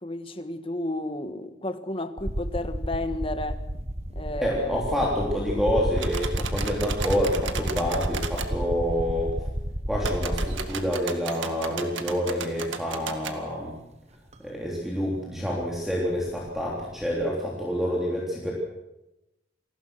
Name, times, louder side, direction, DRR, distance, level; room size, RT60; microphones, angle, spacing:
voice 1, 0.0-3.6 4.1-4.8, left 1 dB, 25° left, 9 dB, 1.5 m, -32 dB
sound 1, 2.2-10.9 12.1-12.2 14.3-14.4 14.7-17.2, equal, 35° right, 1.3 m, -31 dB
voice 2, 4.4-9.3 9.9-13.8 14.4-18.5, equal, ahead, -3 dB, 3.4 m, -27 dB
sound 2, 6.0-8.5 10.0-13.4, right 5 dB, 70° right, 2.1 m, -35 dB
28.0 x 19.5 x 6.4 m, 0.94 s
head